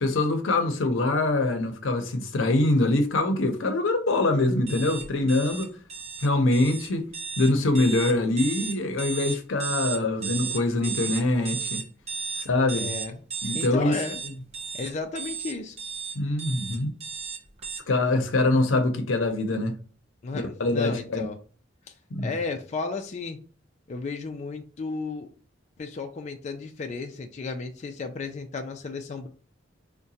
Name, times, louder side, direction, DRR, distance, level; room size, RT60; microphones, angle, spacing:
voice 1, 0.0-5.7 6.2-7.0 7.4-11.8 12.4-12.9 13.4-13.9 16.1-16.9 17.9-19.7 20.3-21.3 22.1-22.3, left 2 dB, 85° left, 0.6 m, -24 dB
sound 1, 4.7-17.8, right 7 dB, 35° right, 0.6 m, -34 dB
voice 2, 12.7-13.2 13.5-14.2 14.7-15.8 18.1-18.3 20.2-21.4 21.9-22.0 22.2-23.4 23.9-25.3 25.8-29.3, left 4 dB, 35° left, 0.3 m, -33 dB
4.7 x 2.1 x 2.7 m
head